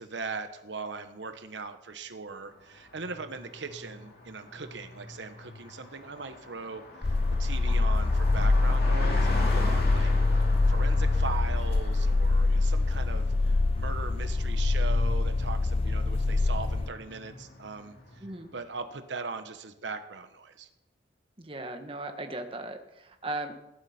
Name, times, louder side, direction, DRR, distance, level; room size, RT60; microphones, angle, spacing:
voice 1, 0.0-10.1 10.4-18.2 18.5-20.7, right 4 dB, 75° right, 8 dB, 1.1 m, -40 dB
Car passing by, 2.6-18.6, left 1 dB, 55° left, 2.5 m, -42 dB
sound 1, 7.0-16.9, left 3 dB, 30° left, 0.4 m, -25 dB
voice 2, 18.2-18.5 21.4-23.5, right 2 dB, 30° right, 5 dB, 1.3 m, -37 dB
18.0 x 11.5 x 4.3 m, 0.91 s
head